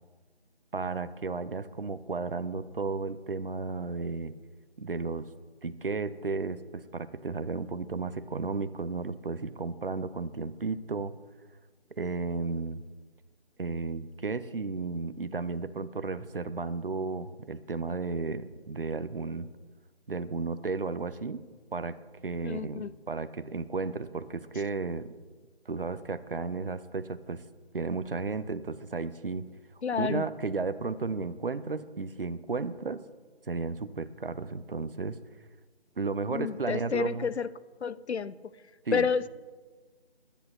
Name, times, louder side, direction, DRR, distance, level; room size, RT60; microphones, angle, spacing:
voice 1, 0.7-4.3 4.8-5.3 5.6-11.1 12.0-12.8 13.6-19.5 20.1-21.4 21.7-22.0 22.2-25.1 25.7-27.4 27.7-29.5 30.0-33.0 33.5-35.2 36.0-37.3 38.9-39.1, right 4 dB, 55° right, 13 dB, 0.6 m, -33 dB
voice 2, 22.4-22.9 29.8-30.2 36.3-37.5 37.8-38.4 38.9-39.3, left 6 dB, 80° left, 16 dB, 0.6 m, -30 dB
21.5 x 10.0 x 2.8 m, 1.4 s
figure-of-eight pair, 175°, 33 cm